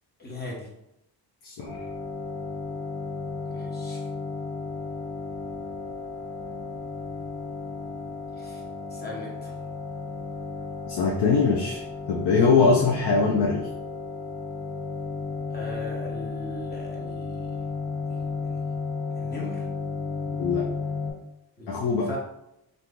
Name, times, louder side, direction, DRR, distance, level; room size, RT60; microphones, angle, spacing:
voice 1, 0.2-0.7 3.4-4.1 8.4-8.6 8.9-9.6 15.5-17.6 18.1-18.8 19.2-19.7 21.6-22.2, left 2 dB, 25° left, -4 dB, 1.1 m, -39 dB
voice 2, 1.4-1.8 10.9-13.7 20.4-20.7 21.7-22.1, left 4 dB, 90° left, -1 dB, 0.6 m, -22 dB
sound 1, 1.7-21.1, left 4 dB, 65° left, 1.4 m, -34 dB
2.9 x 2.6 x 3.6 m, 0.85 s
wide cardioid pair, 140°, 39 cm